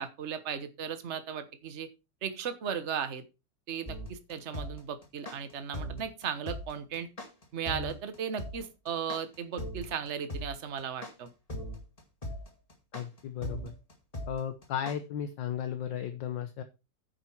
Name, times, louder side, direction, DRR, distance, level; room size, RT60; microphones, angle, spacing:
voice 1, 0.0-1.9 2.2-3.2 3.7-7.1 7.5-11.3, right 7 dB, 40° right, 10 dB, 1.3 m, -36 dB
sound 1, 3.9-15.0, equal, 20° left, 2.0 m, -38 dB
voice 2, 12.9-13.7 14.3-16.6, left 9 dB, 70° left, 9 dB, 1.5 m, -35 dB
9.5 x 7.3 x 4.5 m, 0.27 s
omnidirectional pair, 2.2 m